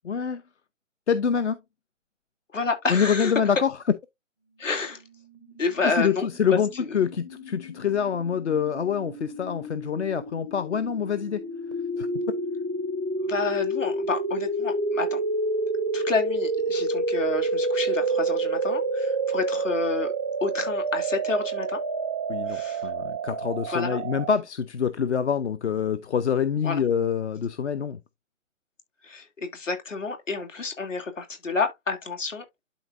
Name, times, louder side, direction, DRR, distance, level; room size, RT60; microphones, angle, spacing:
voice 1, 0.0-0.4 1.1-1.6 2.9-3.7 5.8-6.7 6.9-11.4 12.0-12.1 22.3-28.0, left 7 dB, 60° left, 0.8 m, -26 dB
voice 2, 2.5-3.5 4.6-5.0 5.6-7.0 13.2-15.2 15.9-20.1 20.4-21.8 22.5-22.9 23.7-24.0 26.6-26.9 29.0-32.4, left 4 dB, 75° left, 2.6 m, -29 dB
sound 1, 5.2-24.3, right 3 dB, 15° right, 0.4 m, -29 dB
12.0 x 4.1 x 2.5 m
hypercardioid pair, 150°, 38 cm